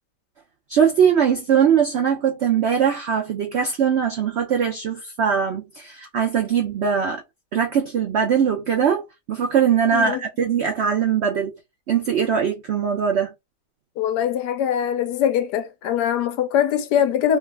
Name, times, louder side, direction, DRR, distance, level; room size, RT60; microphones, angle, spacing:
voice 1, 0.7-7.2 7.5-9.0 9.3-11.5 11.9-13.3, right 7 dB, 90° right, 0.5 m, -21 dB
voice 2, 9.9-10.2 14.0-17.4, left 9 dB, 80° left, 1.2 m, -22 dB
3.1 x 2.3 x 3.2 m
omnidirectional pair, 1.8 m